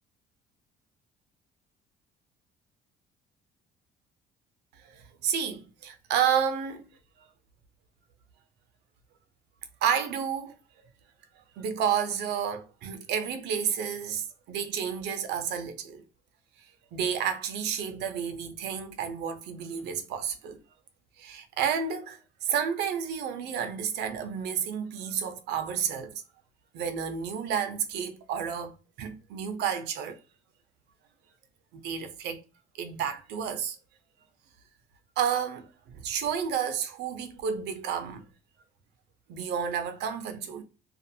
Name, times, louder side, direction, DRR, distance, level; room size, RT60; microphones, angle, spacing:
voice 1, 4.8-6.9 9.8-10.5 11.6-16.0 16.9-20.6 21.2-26.2 26.7-28.7 29.0-30.2 31.8-32.4 32.8-33.8 35.2-35.7 36.0-38.2 39.3-40.6, right 8 dB, 80° right, 0.6 m, -31 dB
2.5 x 2.4 x 2.7 m
cardioid pair, 110°, 17 cm